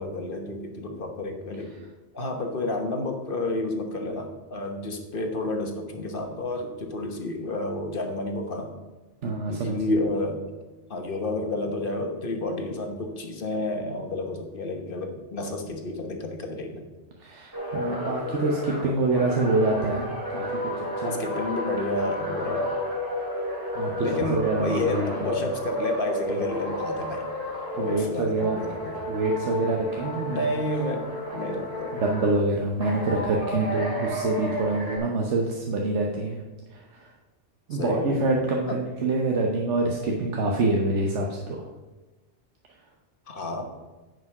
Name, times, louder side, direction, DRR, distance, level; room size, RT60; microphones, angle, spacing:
voice 1, 0.0-1.7 2.1-8.7 9.5-10.4 10.9-16.8 21.0-22.7 24.0-27.3 27.8-29.1 30.3-32.0 37.7-38.2 38.6-38.8 43.3-43.7, left 2 dB, 50° left, 4 dB, 1.3 m, -30 dB
voice 2, 9.2-9.8 17.2-20.5 20.8-21.2 23.7-25.4 27.7-28.6 29.1-30.4 32.0-36.4 36.7-37.1 37.7-41.7, right 2 dB, 90° right, 0 dB, 1.2 m, -26 dB
sound 1, 17.5-28.1 28.4-32.4 32.8-35.0, equal, 20° right, 2.4 m, -32 dB
9.5 x 5.4 x 5.9 m, 1.2 s
omnidirectional pair, 1.2 m